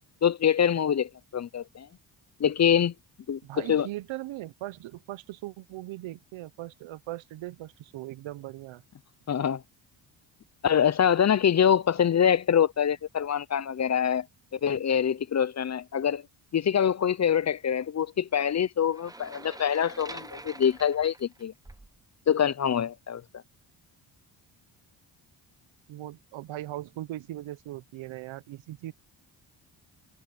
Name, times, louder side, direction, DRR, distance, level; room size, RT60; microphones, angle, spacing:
voice 1, 0.2-1.9 2.4-2.9 3.3-3.4 3.7-3.9 9.3-9.6 10.6-14.3 14.5-16.2 16.5-21.5 22.3-23.2, left 8 dB, 35° left, 0.6 m, -25 dB
voice 2, 3.4-8.8 25.9-28.9, right 16 dB, 80° right, 0.9 m, -39 dB
sound 1, 18.9-22.0, right 2 dB, 10° right, 1.0 m, -45 dB
cardioid pair, 70°, 46 cm